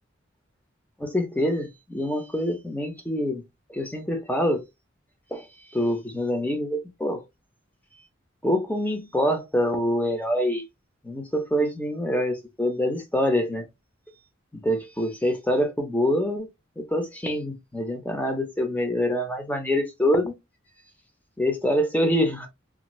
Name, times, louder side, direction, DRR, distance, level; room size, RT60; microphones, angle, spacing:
voice 1, 1.0-3.4 3.7-4.7 5.3-5.5 5.7-7.2 8.4-10.6 11.0-13.7 14.5-16.5 16.8-20.4 21.4-22.5, equal, 10° left, 0.6 m, -25 dB
2.5 x 2.5 x 3.0 m
head